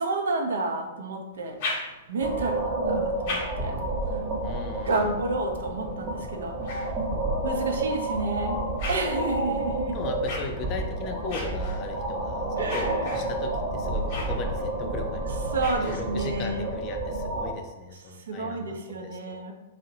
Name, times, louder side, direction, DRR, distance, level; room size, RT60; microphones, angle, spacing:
voice 1, 0.0-1.6 2.1-3.8 4.1-4.2 4.9-6.5 7.4-8.6 8.9-9.9 12.6-13.2 15.5-16.7 18.3-19.5, right 3 dB, 75° right, 3 dB, 0.4 m, -30 dB
sound 1, 1.3-2.3 2.9-7.5 8.1-16.4, left 2 dB, 50° left, 0.7 m, -40 dB
sound 2, 2.2-17.5, right 2 dB, 30° right, 0.8 m, -30 dB
voice 2, 4.4-5.1 9.9-15.5 15.8-19.4, left 4 dB, 35° left, 4 dB, 0.4 m, -38 dB
2.6 x 2.0 x 2.7 m, 0.99 s
hypercardioid pair, 115°, 0 cm